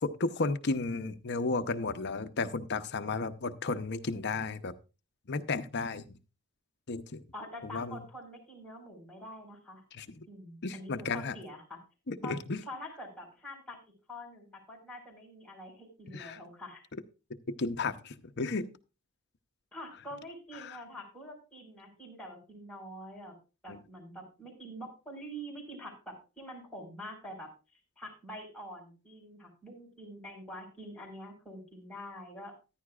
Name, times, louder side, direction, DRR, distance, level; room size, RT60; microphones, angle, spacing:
voice 1, 0.0-4.7 5.3-6.2 6.9-7.2 7.6-8.0 9.9-10.3 10.6-11.4 12.1-12.6 16.1-16.4 17.6-18.7 20.5-20.8 23.7-23.8, left 3 dB, 50° left, 8 dB, 0.8 m, -33 dB
voice 2, 7.3-9.8 10.3-11.8 12.2-12.3 12.7-13.8 14.1-16.8 19.7-23.3 23.6-32.5, equal, 5° left, -3 dB, 4.7 m, -46 dB
14.5 x 10.5 x 2.4 m, 0.31 s
head